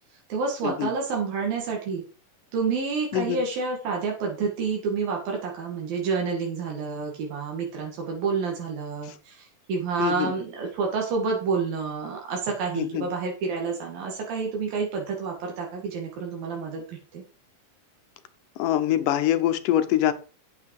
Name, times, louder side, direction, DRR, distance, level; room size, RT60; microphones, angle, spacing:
voice 1, 0.3-2.0 2.5-16.8 17.1-17.2, right 5 dB, 85° right, 0 dB, 3.9 m, -29 dB
voice 2, 3.1-3.4 9.0-9.2 10.0-10.3 12.8-13.1 18.6-20.1, left 12 dB, 75° left, 11 dB, 2.4 m, -24 dB
8.8 x 8.5 x 4.8 m, 0.35 s
omnidirectional pair, 4.0 m